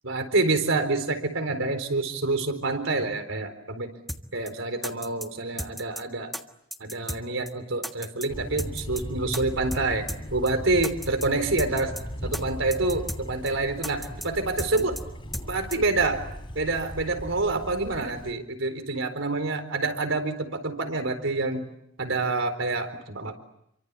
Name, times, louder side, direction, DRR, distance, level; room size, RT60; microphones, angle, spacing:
voice 1, 0.0-3.9 4.3-6.3 6.8-10.0 10.3-11.9 12.2-15.0 15.5-16.2 16.5-21.7 22.0-23.4, right 3 dB, 75° right, 8 dB, 4.2 m, -27 dB
sound 1, 4.1-4.2 4.5-4.6 4.8-5.3 5.6-6.0 6.3-6.4 6.7-7.2 7.5-7.6 7.8-8.3 8.6-9.0 9.3-9.4 9.7-9.8 10.1-10.2 10.5-10.6 10.8-11.3 11.6-12.0 12.3-12.4 12.7-13.2 13.5-13.6 13.8-14.3 14.6-15.0 15.3-15.5 15.7-15.8, equal, ahead, 1.6 m, -34 dB
Thunder, 8.3-18.3, equal, 25° left, 3.9 m, -38 dB
29.0 x 24.0 x 8.4 m, 0.77 s
head